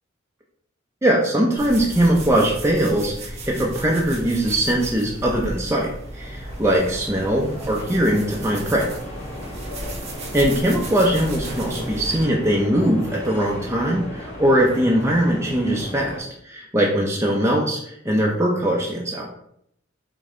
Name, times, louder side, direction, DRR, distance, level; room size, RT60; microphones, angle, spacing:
voice 1, 1.0-5.9 6.1-8.9 10.3-19.3, right 1 dB, 15° right, -2 dB, 0.6 m, -21 dB
sound 1, 1.6-12.2, right 1 dB, 35° right, 0.9 m, -35 dB
sound 2, 5.4-16.2, left 1 dB, 35° left, 1.3 m, -37 dB
5.2 x 2.7 x 3.7 m, 0.72 s
head